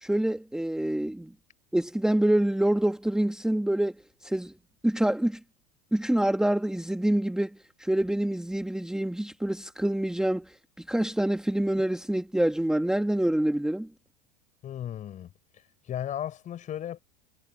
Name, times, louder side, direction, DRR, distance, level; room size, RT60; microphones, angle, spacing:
voice 1, 0.0-1.3 1.7-3.9 4.2-4.5 4.8-5.4 5.9-10.5 10.9-13.9, right 1 dB, 5° right, 1.7 m, -26 dB
voice 2, 14.6-15.3 15.8-17.0, left 10 dB, 35° left, 5.1 m, -35 dB
hypercardioid pair, 90°, 21 cm